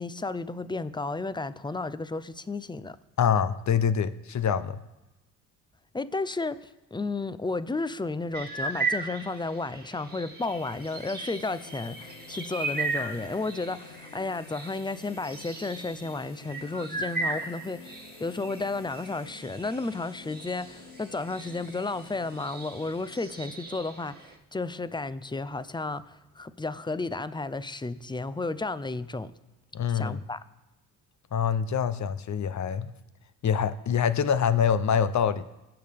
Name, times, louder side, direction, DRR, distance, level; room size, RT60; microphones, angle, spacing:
voice 1, 0.0-3.0 5.9-29.3 29.9-30.4, left 3 dB, 10° left, 0.7 m, -33 dB
voice 2, 3.2-4.8 29.7-30.2 31.3-32.9 33.4-35.4, left 7 dB, 45° left, 0.8 m, -25 dB
sound 1, 8.3-24.4, right 3 dB, 25° right, 2.3 m, -37 dB
sound 2, 10.3-23.7, left 8 dB, 85° left, 1.0 m, -51 dB
21.5 x 8.0 x 3.6 m
supercardioid pair, 55°, 39 cm